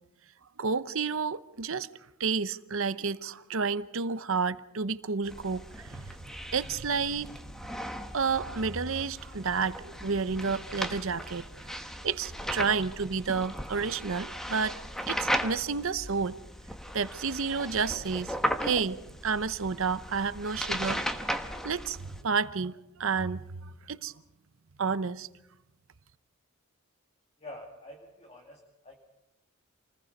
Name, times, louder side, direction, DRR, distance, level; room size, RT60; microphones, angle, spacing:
voice 1, 0.6-1.9 2.2-6.2 6.5-7.5 8.1-11.7 12.0-14.7 15.1-16.4 16.9-18.4 18.6-19.0 19.2-21.0 21.6-24.1 24.8-25.3, right 5 dB, 60° right, 0.8 m, -30 dB
sound 1, 5.2-22.2, equal, ahead, 1.2 m, -37 dB
voice 2, 27.4-29.0, left 1 dB, 30° left, 2.3 m, -47 dB
28.5 x 20.0 x 5.4 m
head